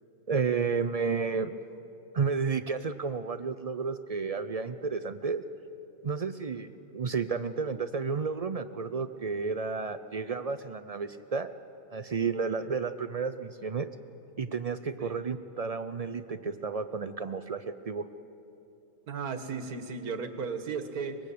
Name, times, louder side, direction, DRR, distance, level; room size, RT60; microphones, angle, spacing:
voice 1, 0.3-1.5 2.1-5.4 6.0-11.5 11.9-13.9 14.4-18.0, right 5 dB, 65° right, 11 dB, 0.3 m, -32 dB
voice 2, 19.1-21.2, right 5 dB, 90° right, 8 dB, 2.0 m, -35 dB
24.5 x 22.0 x 8.5 m, 2.8 s
omnidirectional pair, 1.5 m